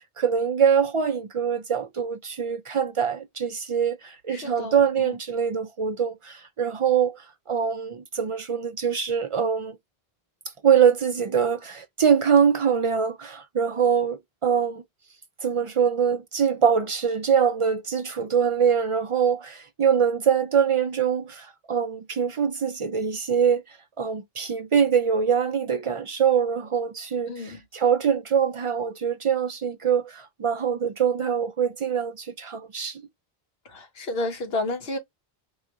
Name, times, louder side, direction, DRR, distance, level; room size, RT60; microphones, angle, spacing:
voice 1, 0.2-9.8 10.6-14.8 15.4-23.6 24.0-33.0, right 7 dB, 60° right, 0.3 m, -23 dB
voice 2, 4.3-5.2 27.3-27.6 33.6-35.0, left 2 dB, 70° left, 1.2 m, -31 dB
4.7 x 2.5 x 2.9 m
omnidirectional pair, 1.0 m